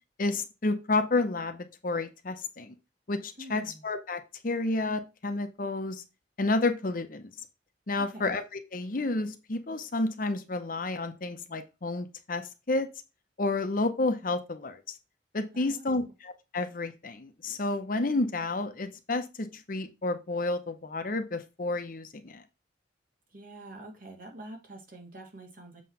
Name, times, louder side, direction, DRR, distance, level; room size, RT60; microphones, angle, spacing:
voice 1, 0.2-2.8 3.1-6.0 6.4-7.3 7.9-12.9 13.4-14.8 15.3-22.4, left 2 dB, 50° left, 9 dB, 0.8 m, -30 dB
voice 2, 3.4-3.8 8.0-8.4 15.5-16.1 23.3-25.8, right 1 dB, 50° right, 2 dB, 2.3 m, -46 dB
7.7 x 3.2 x 5.6 m, 0.27 s
head